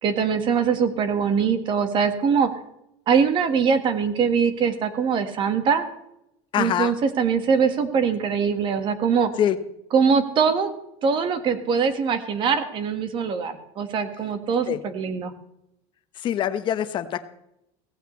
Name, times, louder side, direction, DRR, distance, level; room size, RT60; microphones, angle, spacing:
voice 1, 0.0-2.5 3.1-5.9 6.6-9.3 9.9-10.7 11.0-15.3, right 6 dB, 35° right, 9 dB, 1.6 m, -22 dB
voice 2, 6.5-6.9 9.4-9.6 14.7-14.8 16.1-17.3, left 10 dB, 35° left, 11 dB, 1.0 m, -24 dB
17.0 x 15.5 x 3.2 m, 0.81 s
supercardioid pair, 150°, 15 cm